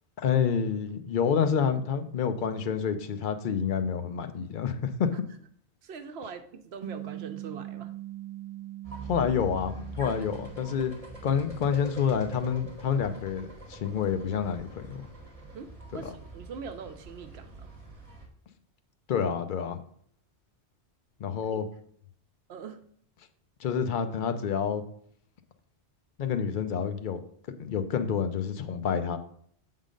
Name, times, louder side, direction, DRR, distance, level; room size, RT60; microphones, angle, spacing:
voice 1, 0.2-5.1 9.0-10.9 11.2-15.1 16.0-16.1 19.1-19.8 21.2-21.7 23.6-24.8 26.2-27.2 27.6-29.2, left 7 dB, 55° left, 8 dB, 0.7 m, -28 dB
voice 2, 5.8-7.9 15.5-17.7 21.5-21.6 22.5-22.8, right 5 dB, 70° right, 8 dB, 0.9 m, -42 dB
sound 1, 6.8-11.5, right 13 dB, 55° right, 0.4 m, -42 dB
sound 2, 8.8-18.2, right 2 dB, 30° right, 1.5 m, -44 dB
7.3 x 3.8 x 5.1 m, 0.63 s
omnidirectional pair, 1.1 m